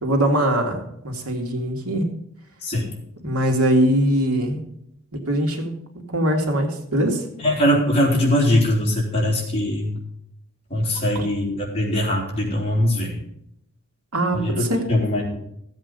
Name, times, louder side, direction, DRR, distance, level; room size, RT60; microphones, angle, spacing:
voice 1, 0.0-2.1 3.2-4.6 5.1-5.7 6.1-7.2 11.1-11.3 14.1-14.8, right 1 dB, 85° right, 3 dB, 2.3 m, -22 dB
voice 2, 7.4-10.0 10.7-13.2 14.3-14.6 14.9-15.4, left 1 dB, 25° left, -2 dB, 3.4 m, -21 dB
15.0 x 8.2 x 5.4 m, 0.75 s
head